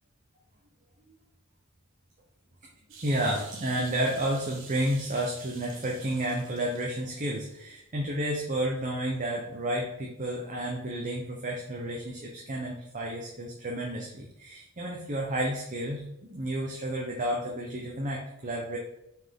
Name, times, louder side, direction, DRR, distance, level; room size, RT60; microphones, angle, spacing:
sound 1, 2.9-7.4 7.8-7.9, right 4 dB, 60° right, 1.3 m, -49 dB
voice 1, 3.0-16.0 16.3-18.8, right 1 dB, 35° right, -1 dB, 0.9 m, -31 dB
6.4 x 4.6 x 3.7 m, 0.83 s
head